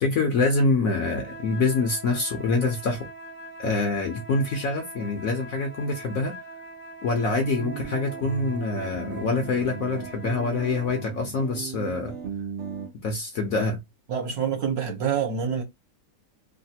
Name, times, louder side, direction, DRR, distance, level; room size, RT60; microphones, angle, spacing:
voice 1, 0.0-3.1 3.6-6.3 7.0-12.2 13.0-13.8, left 3 dB, 60° left, 1.0 m, -25 dB
sound 1, 0.9-11.2, right 2 dB, 20° right, 0.5 m, -43 dB
sound 2, 7.6-12.9, right 7 dB, 75° right, 0.5 m, -36 dB
voice 2, 14.1-15.6, right 7 dB, 60° right, 1.3 m, -27 dB
3.2 x 2.4 x 2.7 m
omnidirectional pair, 2.0 m